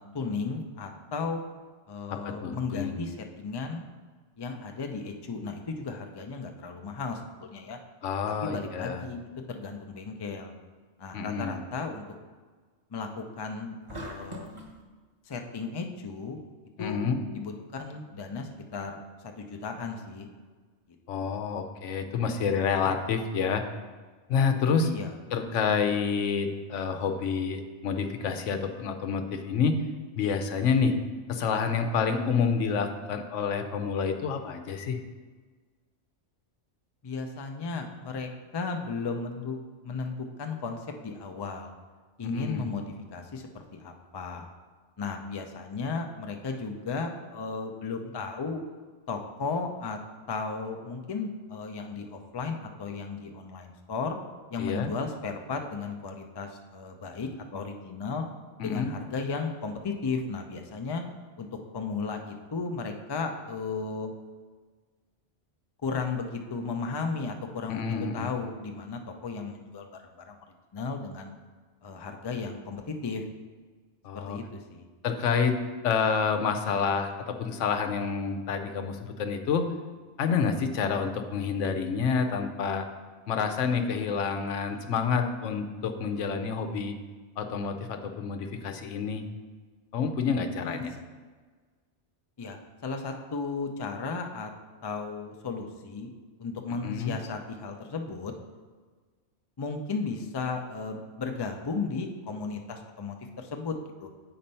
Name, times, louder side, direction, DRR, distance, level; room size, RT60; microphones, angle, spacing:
voice 1, 0.0-1.4 1.9-3.8 4.4-7.8 8.4-9.2 9.5-10.5 11.0-12.0 12.9-14.5 15.3-16.4 16.8-17.0 17.3-19.0 19.2-20.3 24.8-25.2 37.0-39.6 39.8-40.1 40.4-41.7 42.2-44.5 45.0-48.6 49.1-50.0 50.3-54.2 54.5-58.2 58.6-61.0 61.4-61.5 61.7-64.1 65.8-69.9 70.3-70.4 70.7-71.3 71.8-73.2 74.1-74.8 90.6-90.9 92.4-94.5 94.8-96.1 96.4-98.3 99.6-104.1, left 4 dB, 30° left, 4 dB, 0.4 m, -35 dB
voice 2, 2.1-3.0 8.0-9.1 11.1-11.6 16.8-17.2 21.1-23.6 24.3-24.9 25.3-29.8 30.1-30.9 31.3-35.0 42.2-42.7 54.6-54.9 58.6-58.9 67.7-68.3 74.0-74.4 75.0-75.6 75.8-79.7 80.2-82.9 83.3-87.0 87.4-89.2 89.9-90.9 96.8-97.2, left 6 dB, 90° left, 7 dB, 1.0 m, -28 dB
sound 1, 13.9-14.8, equal, 30° right, 0.9 m, -40 dB
7.8 x 4.3 x 5.4 m, 1.4 s
omnidirectional pair, 1.2 m